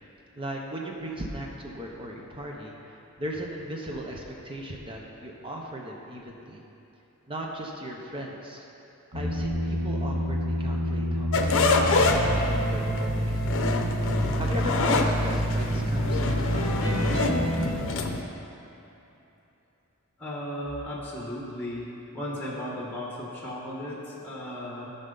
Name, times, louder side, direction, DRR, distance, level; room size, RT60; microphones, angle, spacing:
voice 1, 0.4-6.6 7.3-8.7 9.1-13.7 14.4-16.7, right 1 dB, 25° right, -1 dB, 0.8 m, -37 dB
sound 1, 9.1-17.7, equal, 65° right, 1.7 m, -28 dB
sound 2, 11.3-18.2, left 3 dB, 65° left, 0.7 m, -27 dB
voice 2, 20.2-21.9 22.1-25.0, left 1 dB, 10° left, -5 dB, 1.4 m, -35 dB
13.5 x 5.5 x 3.9 m, 2.9 s
head